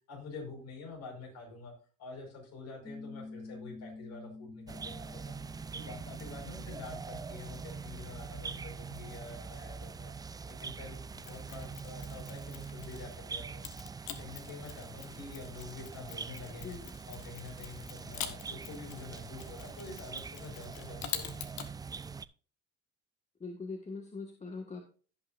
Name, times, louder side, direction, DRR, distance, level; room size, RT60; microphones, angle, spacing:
voice 1, 0.1-1.7 2.0-5.4 5.7-10.1 10.5-13.6 14.2-16.8 17.1-21.5, left 3 dB, 60° left, 1 dB, 5.0 m, -47 dB
Piano, 2.8-8.0, left 3 dB, 5° left, 1.0 m, -49 dB
sound 1, 4.7-22.3, right 5 dB, 15° right, 0.3 m, -44 dB
Mechanisms, 11.2-13.1 13.6-21.7, left 11 dB, 90° left, 1.4 m, -46 dB
voice 2, 16.6-16.9 23.4-24.8, left 4 dB, 25° left, 2 dB, 1.6 m, -42 dB
17.0 x 5.9 x 2.5 m, 0.39 s
cardioid pair, 110°, 29 cm